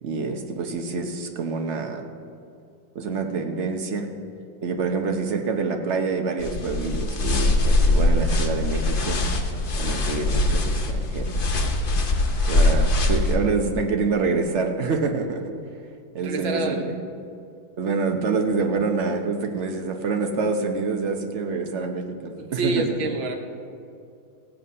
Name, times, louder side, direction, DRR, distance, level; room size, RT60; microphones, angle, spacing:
voice 1, 0.0-2.1 2.9-4.1 4.6-9.2 9.8-11.5 12.5-15.4 16.1-16.9 17.8-22.2 22.5-23.0, right 4 dB, 50° right, 4 dB, 0.9 m, -26 dB
sound 1, 6.4-13.4, left 2 dB, 50° left, 0.6 m, -22 dB
voice 2, 16.2-16.9 22.3-23.4, right 2 dB, 90° right, 3 dB, 1.9 m, -27 dB
16.0 x 8.0 x 5.4 m, 2.5 s
omnidirectional pair, 2.1 m